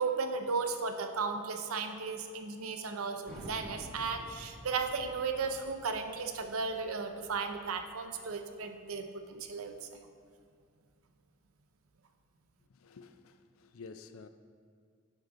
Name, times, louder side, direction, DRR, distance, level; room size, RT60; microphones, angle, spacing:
voice 1, 0.0-10.0, right 4 dB, 90° right, 6 dB, 0.6 m, -35 dB
sound 1, 3.2-8.6, equal, 5° left, 1.3 m, -51 dB
voice 2, 12.7-14.3, left 4 dB, 80° left, 10 dB, 0.4 m, -51 dB
8.3 x 6.0 x 3.8 m, 2.1 s
head